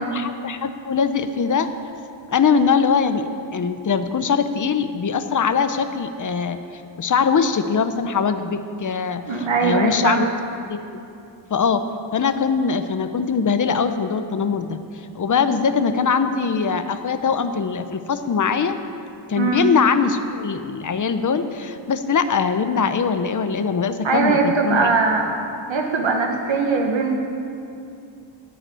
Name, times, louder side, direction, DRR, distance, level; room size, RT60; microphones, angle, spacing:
voice 1, 0.0-1.7 2.3-6.6 7.0-10.3 10.7-11.0 11.5-11.8 12.1-14.8 15.1-18.8 19.3-24.9, left 5 dB, 40° left, 9 dB, 0.7 m, -22 dB
voice 2, 9.3-10.2 19.3-19.6 24.0-25.3 25.7-27.2, right 4 dB, 75° right, 2 dB, 1.5 m, -21 dB
11.0 x 9.5 x 9.0 m, 2.6 s
wide cardioid pair, 130°, 46 cm